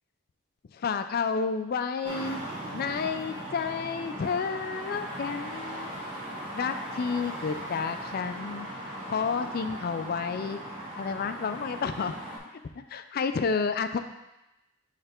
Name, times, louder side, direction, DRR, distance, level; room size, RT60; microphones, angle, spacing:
voice 1, 0.7-2.4 2.7-5.9 6.5-8.7 9.1-10.6 11.0-12.1 12.9-14.0, left 5 dB, 50° left, 9 dB, 0.4 m, -30 dB
sound 1, 2.0-12.4, right 1 dB, 25° right, 1.4 m, -38 dB
6.8 x 3.2 x 4.4 m, 0.96 s
head